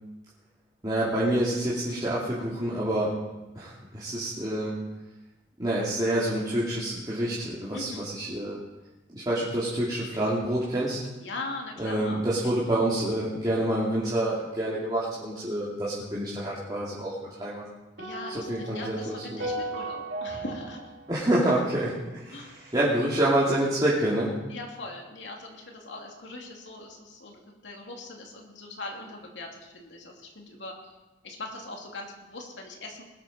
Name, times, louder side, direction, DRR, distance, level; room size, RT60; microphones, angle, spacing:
voice 1, 0.8-3.2 3.5-4.8 5.6-8.6 9.1-11.0 11.8-17.6 18.5-19.4 21.1-24.3, right 1 dB, 20° right, -8 dB, 2.7 m, -27 dB
voice 2, 7.7-8.0 11.2-12.6 18.0-20.9 22.3-22.5 24.5-31.0 31.2-33.0, left 2 dB, 70° left, 0 dB, 2.8 m, -40 dB
sound 1, 18.0-22.3, right 1 dB, 75° right, 3.2 m, -37 dB
20.5 x 13.0 x 4.4 m, 1.1 s
head